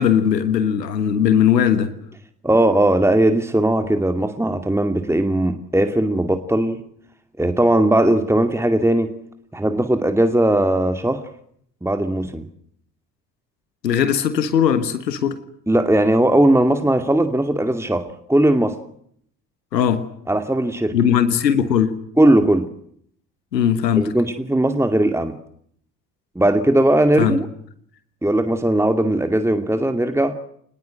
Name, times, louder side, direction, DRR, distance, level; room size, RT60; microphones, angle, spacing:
voice 1, 0.0-1.9 13.8-15.4 19.7-20.0 20.9-22.0 23.5-24.1 27.2-27.4, left 8 dB, 85° left, 12 dB, 1.5 m, -18 dB
voice 2, 2.4-6.8 7.4-9.2 9.5-11.3 11.8-12.5 15.7-18.8 20.3-21.0 22.2-22.7 24.0-25.3 26.4-27.5 28.2-30.4, right 1 dB, 5° right, 8 dB, 2.5 m, -18 dB
27.0 x 21.0 x 7.8 m, 0.67 s
figure-of-eight pair, 50°, 48 cm